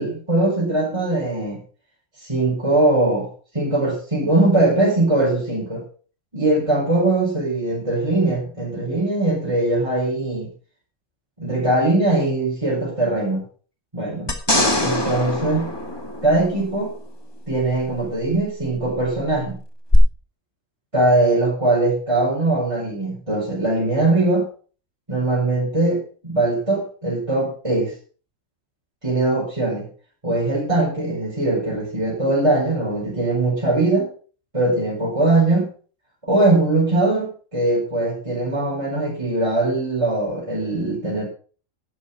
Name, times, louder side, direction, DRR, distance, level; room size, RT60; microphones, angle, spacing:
voice 1, 0.0-1.6 2.2-3.3 3.5-5.8 6.3-10.5 11.4-13.4 13.9-14.3 14.8-15.7 16.2-16.9 17.5-19.6 20.9-24.5 25.1-27.9 29.0-29.9 30.2-34.1 34.5-35.7 36.2-41.3, right 2 dB, 20° right, -5 dB, 4.9 m, -21 dB
sound 1, 14.3-16.8 19.9-20.0, left 1 dB, 20° left, 2.0 m, -22 dB
11.0 x 11.0 x 5.5 m, 0.40 s
omnidirectional pair, 1.4 m